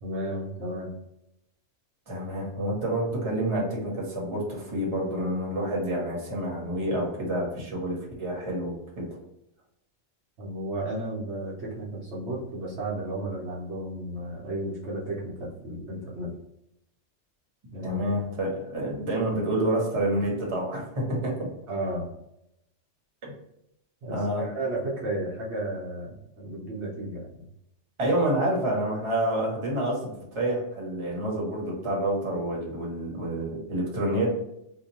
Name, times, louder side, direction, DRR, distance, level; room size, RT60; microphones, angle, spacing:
voice 1, 0.0-0.9 10.4-16.3 17.7-18.0 21.7-22.1 24.0-27.5, right 1 dB, 65° right, -4 dB, 1.0 m, -33 dB
voice 2, 2.1-9.2 17.8-21.5 23.2-23.3 24.1-24.4 28.0-34.3, right 1 dB, 25° right, -3 dB, 0.9 m, -28 dB
2.8 x 2.1 x 4.1 m, 0.81 s
omnidirectional pair, 1.3 m